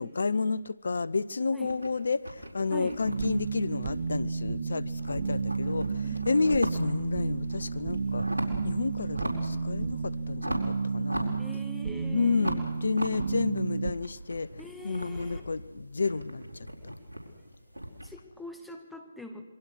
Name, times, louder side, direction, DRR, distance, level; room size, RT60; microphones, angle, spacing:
voice 1, 0.0-8.3 8.6-11.3 12.1-14.5 14.8-16.9, left 4 dB, 70° left, 0.8 m, -30 dB
sound 1, 1.6-4.5 4.8-7.1 7.4-8.7 9.0-9.6 9.9-11.9 12.4-18.1, equal, 90° right, 4.5 m, -38 dB
sound 2, 2.9-10.3, left 1 dB, 35° right, 5.5 m, -50 dB
sound 3, 3.0-13.9, right 4 dB, 55° right, 1.4 m, -32 dB
voice 2, 11.4-12.7 14.6-15.4 18.0-19.4, left 1 dB, ahead, 1.9 m, -43 dB
27.0 x 23.0 x 6.4 m
figure-of-eight pair, 145°, 0 cm